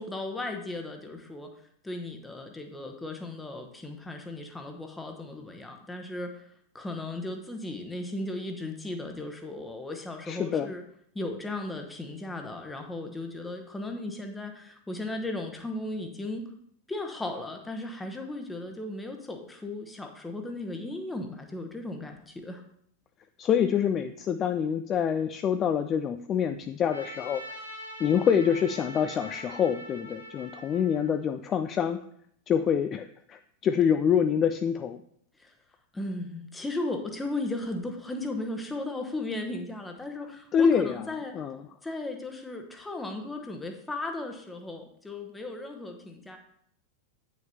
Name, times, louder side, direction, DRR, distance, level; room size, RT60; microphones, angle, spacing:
voice 1, 0.0-1.5 1.8-6.4 6.7-10.8 11.1-16.5 16.9-22.6 35.4-35.5 35.9-41.4 41.8-46.4, left 2 dB, 10° left, 4 dB, 1.0 m, -36 dB
voice 2, 10.2-10.7 23.4-27.4 28.0-32.0 32.5-35.0 40.5-41.0 41.3-41.6, left 8 dB, 30° left, 9 dB, 0.3 m, -26 dB
Trumpet, 26.8-31.3, equal, 90° left, 2.8 m, -43 dB
8.8 x 6.1 x 2.9 m, 0.68 s
figure-of-eight pair, 90°, 0 cm